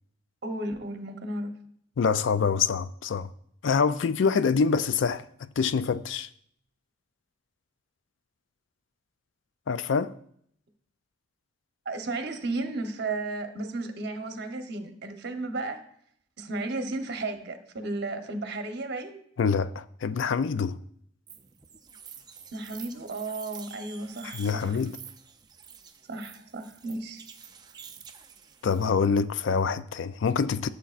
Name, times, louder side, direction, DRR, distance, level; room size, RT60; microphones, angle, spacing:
voice 1, 0.4-1.5 11.8-15.8 16.4-19.2 22.5-24.8 26.1-27.2, right 2 dB, 55° right, 0.9 m, -34 dB
voice 2, 2.0-3.3 3.6-6.3 9.7-10.1 19.4-20.8 24.2-25.0 28.6-30.7, left 5 dB, 70° left, 0.4 m, -25 dB
sound 1, 21.3-28.9, right 7 dB, 20° right, 0.5 m, -48 dB
12.5 x 6.9 x 2.5 m
head